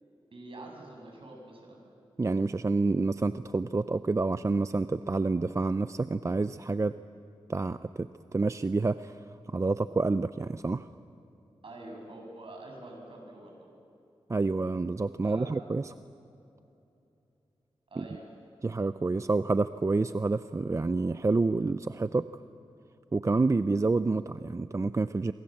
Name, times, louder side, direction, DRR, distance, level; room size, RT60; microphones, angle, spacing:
voice 1, 0.3-1.8 11.6-13.7 15.2-15.5 17.9-18.2, right 2 dB, 60° right, 1 dB, 7.7 m, -46 dB
voice 2, 2.2-7.0 7.5-9.2 9.5-10.9 14.3-15.9 18.0-18.1 18.6-22.3 23.1-25.3, right 3 dB, 30° right, 12 dB, 0.6 m, -28 dB
27.5 x 24.5 x 7.7 m, 2.8 s
wide cardioid pair, 75°, 10 cm